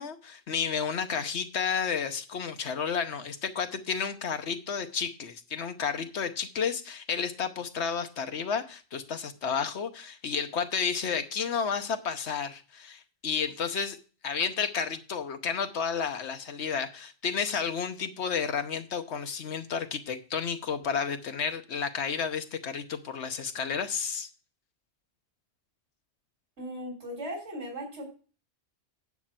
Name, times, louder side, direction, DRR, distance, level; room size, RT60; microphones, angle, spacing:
voice 1, 0.0-14.0 14.2-24.3, left 6 dB, 75° left, 7 dB, 1.2 m, -31 dB
voice 2, 26.6-28.1, equal, 90° right, 0 dB, 3.8 m, -37 dB
9.7 x 4.4 x 7.4 m, 0.36 s
omnidirectional pair, 1.1 m